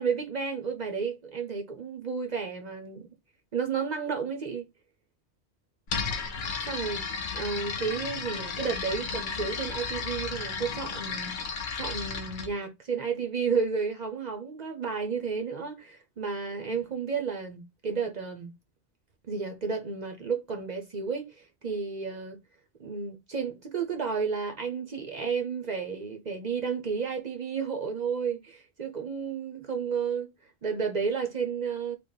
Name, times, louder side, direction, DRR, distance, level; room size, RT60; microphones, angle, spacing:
voice 1, 0.0-3.1 3.5-4.7 6.7-7.0 7.3-18.5 19.3-22.4 22.8-30.3 30.6-32.0, right 5 dB, 50° right, 0.5 m, -32 dB
sound 1, 5.9-12.5, left 5 dB, 50° left, 0.7 m, -34 dB
3.2 x 2.1 x 3.8 m
omnidirectional pair, 1.2 m